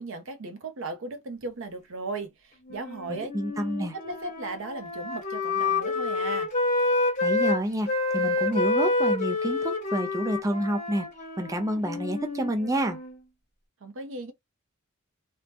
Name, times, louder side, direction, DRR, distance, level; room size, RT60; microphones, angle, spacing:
voice 1, 0.0-3.3 3.8-6.5 13.8-14.3, right 3 dB, 65° right, 0.6 m, -36 dB
Wind instrument woodwind instrument, 2.7-7.6 7.9-13.2, left 3 dB, 35° left, 1.0 m, -28 dB
voice 2, 3.1-3.9 7.2-11.1 11.4-13.0, right 1 dB, 15° right, 0.4 m, -29 dB
2.8 x 2.1 x 3.3 m
head